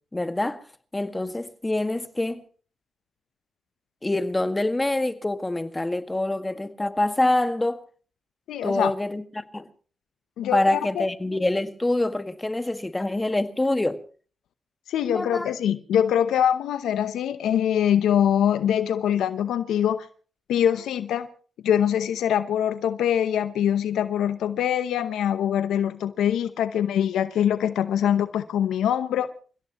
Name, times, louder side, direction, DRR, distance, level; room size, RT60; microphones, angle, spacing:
voice 1, 0.1-0.7 0.9-2.4 4.0-7.8 8.6-9.7 10.5-14.0 15.0-15.5, left 2 dB, 20° left, 1.9 m, -25 dB
voice 2, 8.5-8.9 10.4-11.1 14.9-20.1 20.5-21.3 21.6-29.3, left 9 dB, 85° left, 0.8 m, -23 dB
29.0 x 16.5 x 3.1 m
supercardioid pair, 50°, 0 cm